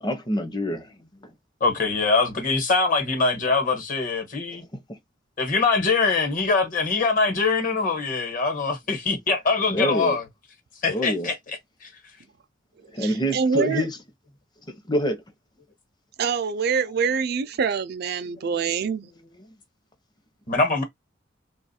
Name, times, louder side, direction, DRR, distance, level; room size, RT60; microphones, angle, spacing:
voice 1, 0.0-0.9 4.7-5.0 9.7-10.2 10.9-11.3 12.9-13.9 14.7-15.2, equal, 20° left, 0.8 m, -26 dB
voice 2, 1.6-4.6 5.4-10.2 10.8-11.9 20.5-20.8, left 4 dB, 45° left, 1.2 m, -23 dB
voice 3, 12.9-13.9 16.2-19.1, right 6 dB, 55° right, 0.4 m, -25 dB
3.0 x 2.4 x 4.1 m
head